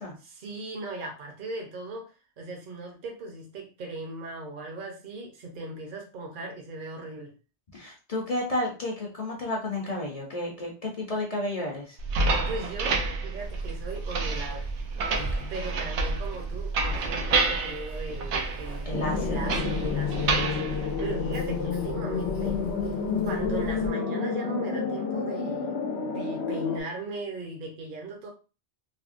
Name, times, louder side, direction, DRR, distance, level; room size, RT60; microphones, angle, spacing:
voice 1, 0.2-2.1 2.4-7.3 12.2-14.7 15.5-22.6 23.2-25.8 26.0-28.3, right 2 dB, 50° right, 1 dB, 0.9 m, -38 dB
voice 2, 7.7-12.0 15.2-15.5 18.8-19.4, left 1 dB, 40° left, -1 dB, 0.7 m, -32 dB
sound 1, 12.0-21.7, right 3 dB, 80° right, 0.9 m, -29 dB
Keys jangling, 13.4-23.9, right 1 dB, 15° right, 0.5 m, -40 dB
sound 2, 18.9-26.8, left 6 dB, 75° left, 0.9 m, -30 dB
3.4 x 2.1 x 2.5 m, 0.33 s
omnidirectional pair, 1.1 m